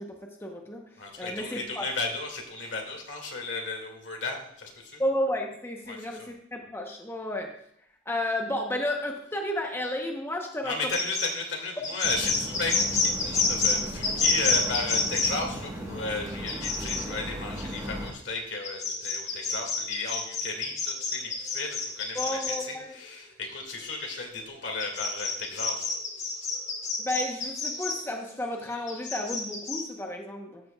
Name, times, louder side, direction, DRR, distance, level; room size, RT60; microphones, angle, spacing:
voice 1, 0.0-1.9 5.0-7.5 8.1-11.0 22.1-23.0 27.0-30.6, left 1 dB, 15° left, 2 dB, 0.8 m, -32 dB
voice 2, 1.0-5.0 5.9-6.3 10.6-26.0, left 3 dB, 75° left, 1 dB, 2.0 m, -34 dB
sound 1, 10.9-13.8 14.0-15.3 16.5-17.1 17.7-18.1 18.6-22.6 23.4-23.5 24.8-28.0 28.7-29.8, left 4 dB, 40° left, 2.0 m, -28 dB
sound 2, 12.0-18.1, equal, 20° right, 1.2 m, -37 dB
13.5 x 7.6 x 2.3 m, 0.71 s
head